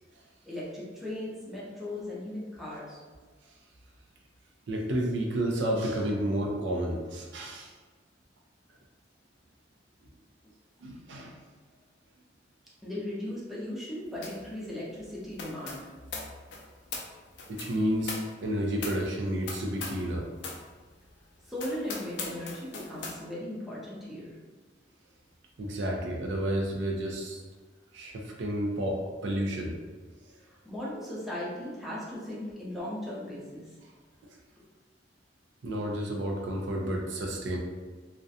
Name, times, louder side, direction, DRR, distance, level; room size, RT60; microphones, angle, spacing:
voice 1, 0.4-3.0 12.8-15.9 21.5-24.4 30.5-33.7 34.6-34.7, left 1 dB, ahead, -8 dB, 0.6 m, -37 dB
voice 2, 4.7-7.7 10.8-11.3 17.5-20.3 25.6-27.4 27.9-29.8 35.6-37.6, right 1 dB, 75° right, 0 dB, 0.4 m, -31 dB
sound 1, 14.2-14.5 14.7-20.1 20.4-20.7 21.1-21.2 21.6-23.2, left 4 dB, 65° left, 0.4 m, -40 dB
2.4 x 2.1 x 2.6 m, 1.3 s
head